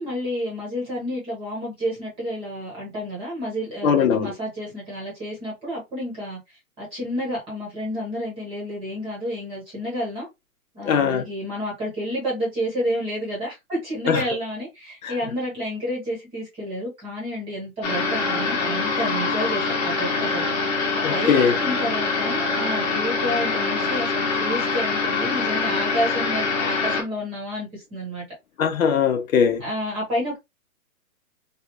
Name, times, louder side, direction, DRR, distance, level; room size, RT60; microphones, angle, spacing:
voice 1, 0.0-6.4 6.8-10.3 10.7-20.5 20.9-28.2 29.6-30.4, equal, 15° right, 0.9 m, -30 dB
voice 2, 3.8-4.3 10.8-11.2 14.1-14.2 15.0-15.1 21.0-21.6 28.6-29.6, left 7 dB, 70° left, 0.9 m, -20 dB
sound 1, 17.8-27.0, left 4 dB, 30° left, 1.0 m, -24 dB
3.3 x 2.4 x 2.9 m
hypercardioid pair, 160°, 43 cm